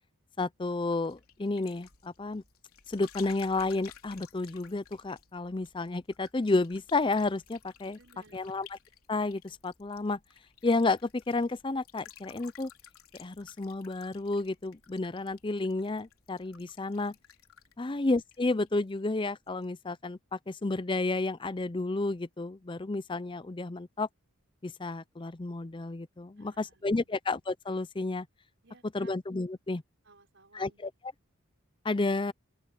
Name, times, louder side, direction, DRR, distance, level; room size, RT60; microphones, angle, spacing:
voice 1, 0.4-2.4 2.9-8.0 8.3-8.7 9.1-10.2 10.6-12.7 13.2-17.1 17.8-24.1 24.6-28.3 28.9-29.8 30.5-30.9 31.8-32.3, left 3 dB, 20° left, 0.5 m, -31 dB
sound 1, 0.7-19.0 19.3-19.7, left 8 dB, 80° left, 3.3 m, -55 dB
voice 2, 8.0-8.6 17.8-18.0 26.4-27.1 28.6-29.2 30.0-30.9, right 3 dB, 55° right, 6.2 m, -59 dB
open air
head